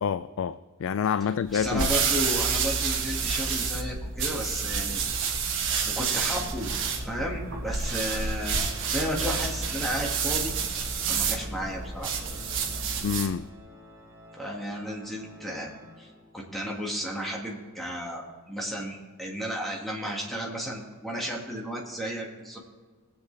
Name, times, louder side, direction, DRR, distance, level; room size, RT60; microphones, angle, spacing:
voice 1, 0.0-1.9 13.0-13.5, left 7 dB, 65° left, 0.3 m, -28 dB
voice 2, 1.5-5.0 6.0-6.7 7.0-10.5 11.1-12.1 14.4-15.7 16.0-22.6, equal, ahead, 1.8 m, -33 dB
sound 1, 1.5-13.4, right 5 dB, 55° right, 1.4 m, -29 dB
Organ, 5.7-16.6, left 3 dB, 15° right, 3.8 m, -50 dB
19.5 x 8.2 x 3.3 m
head